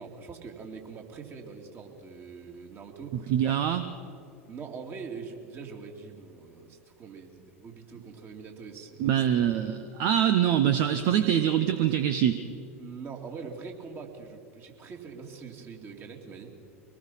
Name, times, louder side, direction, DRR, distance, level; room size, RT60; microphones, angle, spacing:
voice 1, 0.0-3.6 4.5-9.6 11.2-11.3 12.8-16.5, right 5 dB, 30° right, 2 dB, 3.0 m, -43 dB
voice 2, 3.1-3.8 9.0-12.4, right 10 dB, 50° right, 9 dB, 1.0 m, -24 dB
24.5 x 19.5 x 5.8 m, 2.6 s
figure-of-eight pair, 85°, 8 cm